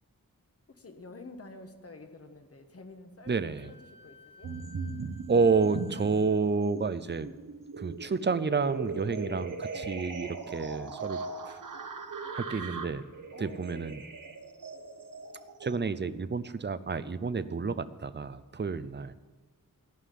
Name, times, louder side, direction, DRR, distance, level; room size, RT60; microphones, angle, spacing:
voice 1, 0.7-4.6 9.3-9.4 12.5-12.9 13.3-13.9, left 3 dB, 45° left, 6 dB, 1.3 m, -49 dB
voice 2, 3.3-3.7 5.3-7.3 7.8-11.2 11.5-11.6 12.3-13.0 13.4-14.0 15.6-19.1, right 4 dB, 30° right, 14 dB, 0.6 m, -29 dB
Wind instrument woodwind instrument, 3.5-6.3, left 4 dB, 15° left, 1.1 m, -55 dB
sound 1, 4.4-6.3 6.7-15.8, right 4 dB, 65° right, 1.1 m, -39 dB
15.0 x 5.6 x 9.4 m, 1.3 s
wide cardioid pair, 90°, 35 cm